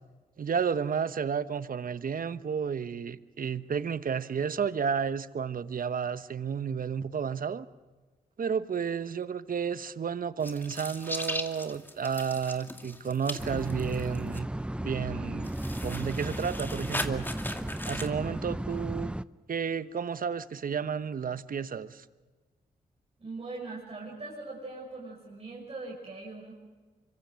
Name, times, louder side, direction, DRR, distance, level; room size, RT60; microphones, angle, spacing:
voice 1, 0.4-7.7 8.4-14.5 14.8-15.5 15.8-17.3 17.9-19.1 19.5-22.0, right 6 dB, 55° right, 14 dB, 1.1 m, -32 dB
sound 1, 10.4-14.4 15.4-18.1, left 1 dB, 10° left, 2.4 m, -38 dB
sound 2, 13.4-19.2, right 1 dB, 5° right, 0.7 m, -35 dB
voice 2, 23.2-26.5, right 3 dB, 35° right, -3 dB, 6.5 m, -41 dB
25.5 x 24.0 x 6.4 m, 1.3 s
cardioid pair, 55°, 17 cm